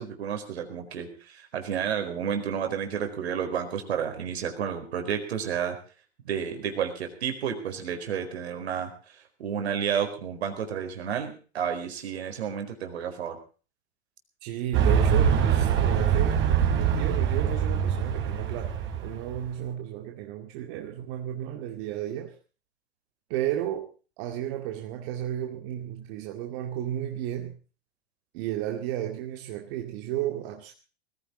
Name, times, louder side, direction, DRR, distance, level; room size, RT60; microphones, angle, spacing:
voice 1, 0.0-5.8 6.2-13.4, right 8 dB, 75° right, 6 dB, 4.6 m, -31 dB
voice 2, 14.4-16.4 16.7-18.8 19.0-22.3 23.3-23.9 24.2-27.5 28.3-30.7, right 12 dB, 55° right, 3 dB, 2.3 m, -33 dB
sound 1, 14.7-19.5, right 8 dB, 35° right, 4.6 m, -24 dB
20.5 x 15.0 x 3.9 m, 0.38 s
hypercardioid pair, 100°, 32 cm